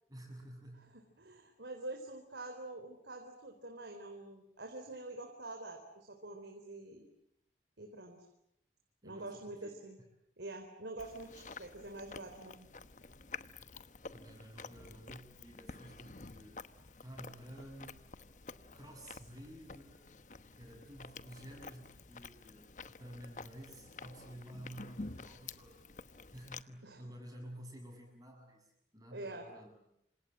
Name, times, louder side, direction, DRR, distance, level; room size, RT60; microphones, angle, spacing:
voice 1, 0.1-1.0 9.0-9.8 13.6-16.6 17.0-18.0 18.7-20.1 20.5-25.8 26.3-29.8, right 1 dB, 20° right, 1 dB, 7.3 m, -52 dB
voice 2, 0.9-7.1 7.8-8.3 9.0-10.0 10.4-12.7 26.8-27.0 29.1-29.5, right 2 dB, 85° right, 4 dB, 4.0 m, -46 dB
Chewing mastication, 11.0-26.6, left 4 dB, 45° left, 1.1 m, -50 dB
28.5 x 27.0 x 7.7 m, 0.78 s
head